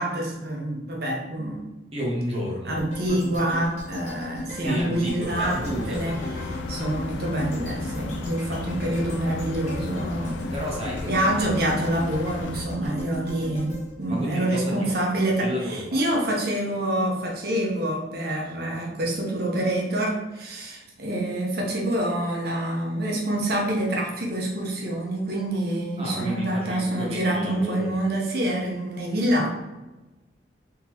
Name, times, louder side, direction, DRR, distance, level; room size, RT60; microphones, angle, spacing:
voice 1, 0.0-1.7 2.7-10.5 11.0-29.5, right 1 dB, 55° right, -1 dB, 0.9 m, -26 dB
voice 2, 1.9-3.5 4.6-6.6 10.5-11.4 12.8-13.0 14.1-15.0 15.4-15.8 26.0-27.9, equal, 30° right, -3 dB, 1.1 m, -31 dB
sound 1, 2.8-15.0 15.4-15.5, left 1 dB, 35° left, 1.4 m, -38 dB
sound 2, 5.3-12.6, left 3 dB, 75° left, 0.4 m, -34 dB
3.7 x 3.6 x 3.0 m, 1.1 s
head